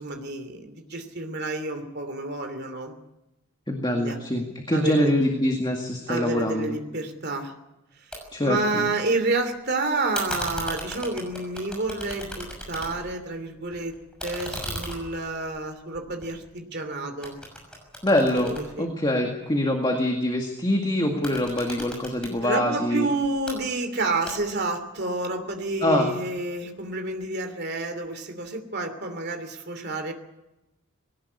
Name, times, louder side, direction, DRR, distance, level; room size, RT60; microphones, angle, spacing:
voice 1, 0.0-3.0 4.0-4.2 4.7-5.1 6.1-7.5 8.4-13.9 14.2-17.4 18.4-18.9 22.4-30.1, right 2 dB, 45° right, 6 dB, 2.9 m, -29 dB
voice 2, 3.7-6.8 8.3-8.9 18.0-23.1 25.8-26.1, left 1 dB, 20° left, 2 dB, 2.0 m, -24 dB
sound 1, 8.1-8.2 8.5-9.3 10.1-13.2 13.6-16.8 17.2-19.5 21.1-22.3 23.2-23.6 24.3-24.7, equal, 5° left, 6.1 m, -37 dB
20.5 x 18.0 x 8.5 m, 0.96 s
head